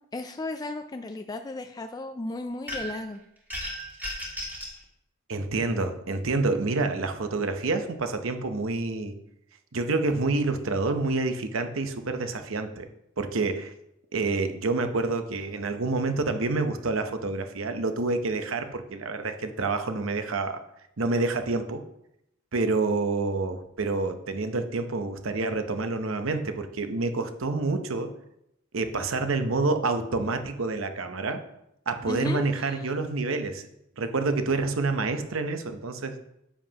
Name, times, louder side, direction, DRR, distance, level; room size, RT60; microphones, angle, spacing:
voice 1, 0.1-3.2 32.1-32.9, left 2 dB, 20° left, 6 dB, 0.3 m, -34 dB
sound 1, 2.7-3.1 3.5-4.8, equal, 10° right, 1.7 m, -35 dB
voice 2, 5.3-9.1 9.7-12.9 13.2-13.7 14.1-20.6 21.0-21.8 22.5-28.1 28.7-31.4 31.9-33.7 34.0-36.2, right 3 dB, 70° right, 7 dB, 0.8 m, -28 dB
10.0 x 7.5 x 2.9 m, 0.80 s
head